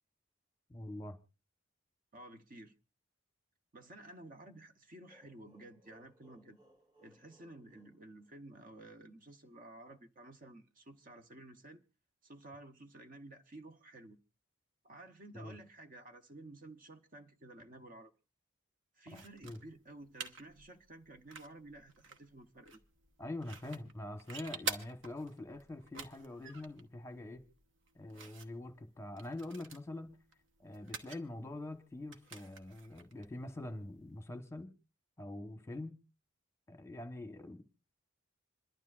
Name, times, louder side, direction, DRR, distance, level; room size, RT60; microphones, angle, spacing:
voice 1, 0.7-1.2 15.3-15.5 19.1-19.6 23.2-27.4 27.9-30.1 30.6-34.7 35.2-36.0 36.7-37.6, left 1 dB, 15° left, 1.0 m, -44 dB
voice 2, 2.1-2.7 3.7-6.6 7.0-11.8 12.2-14.2 14.8-18.1 18.9-22.8, right 2 dB, 40° right, 0.8 m, -53 dB
sound 1, 5.1-8.8, right 1 dB, 20° right, 1.9 m, -66 dB
sound 2, 19.1-34.2, right 4 dB, 60° right, 1.1 m, -49 dB
27.0 x 12.0 x 2.4 m
head